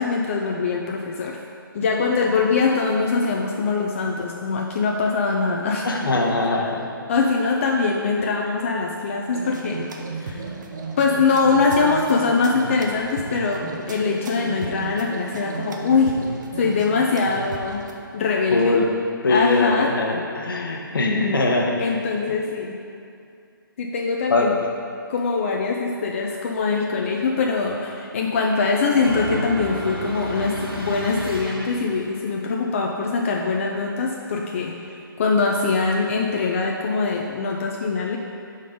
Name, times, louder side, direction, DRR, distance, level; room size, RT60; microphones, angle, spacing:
voice 1, 0.0-1.4 1.7-5.9 6.6-6.8 7.1-9.9 10.2-10.5 11.0-16.2 16.6-17.9 18.1-18.8 19.3-19.9 21.8-22.7 23.8-24.5 25.1-34.8 35.2-38.2, left 4 dB, 35° left, -1 dB, 0.4 m, -22 dB
voice 2, 5.8-6.9 18.5-18.9 19.2-21.8 24.3-24.5, left 3 dB, 70° left, 0 dB, 0.9 m, -21 dB
sound 1, 9.3-17.9, right 4 dB, 55° right, 0.7 m, -34 dB
sound 2, 29.0-32.2, right 1 dB, 90° right, 1.0 m, -32 dB
5.2 x 3.9 x 5.0 m, 2.5 s
figure-of-eight pair, 150°, 12 cm